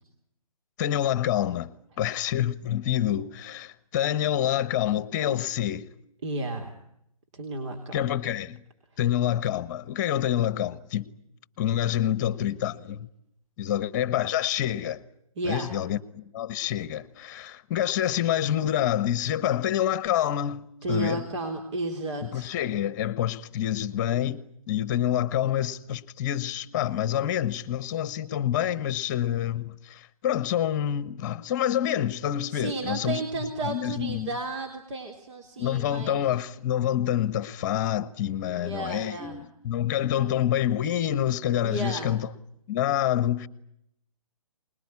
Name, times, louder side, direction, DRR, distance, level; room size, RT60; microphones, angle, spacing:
voice 1, 0.8-1.7 2.0-5.9 7.9-8.6 9.0-11.1 11.6-13.1 13.6-15.0 15.4-21.2 22.3-33.2 33.6-34.3 35.6-42.3 42.7-43.5, left 11 dB, 30° left, 1.2 m, -27 dB
voice 2, 6.2-6.7 7.3-8.0 15.4-15.8 20.8-22.5 32.5-36.4 38.4-39.4 40.1-40.3 41.6-42.1, right 2 dB, 55° right, 3.4 m, -33 dB
25.5 x 21.0 x 9.7 m
hypercardioid pair, 150°, 19 cm